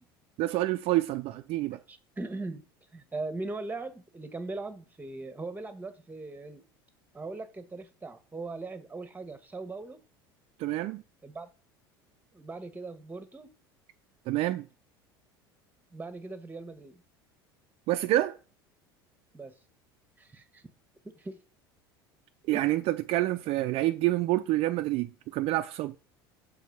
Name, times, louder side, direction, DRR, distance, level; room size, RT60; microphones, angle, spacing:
voice 1, 0.4-1.8 10.6-11.0 14.3-14.7 17.9-18.4 22.5-26.0, right 16 dB, 55° right, 0.5 m, -27 dB
voice 2, 1.9-2.6 2.9-6.7 7.1-10.0 11.2-11.5 12.3-13.5 15.9-17.0 19.3-19.6 20.2-20.6 21.0-21.4 22.5-22.6, right 3 dB, 15° right, 1.4 m, -40 dB
6.8 x 4.5 x 5.4 m
hypercardioid pair, 75°, 12 cm